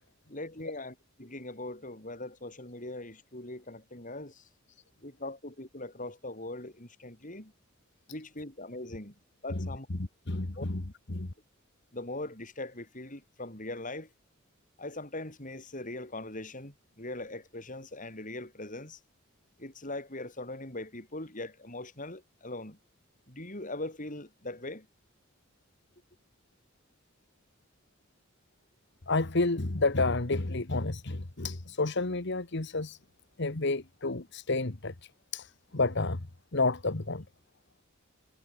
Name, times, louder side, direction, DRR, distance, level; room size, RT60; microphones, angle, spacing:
voice 1, 0.3-4.4 5.0-7.5 8.1-9.2 9.4-9.9 10.6-10.7 11.9-14.1 14.8-19.0 19.6-22.8 23.3-24.9, left 2 dB, 40° left, 6.9 m, -41 dB
voice 2, 10.3-10.8 11.1-11.3 29.1-33.0 33.4-34.9 35.3-35.5 35.7-36.2 36.5-37.2, left 3 dB, 60° left, 1.5 m, -30 dB
head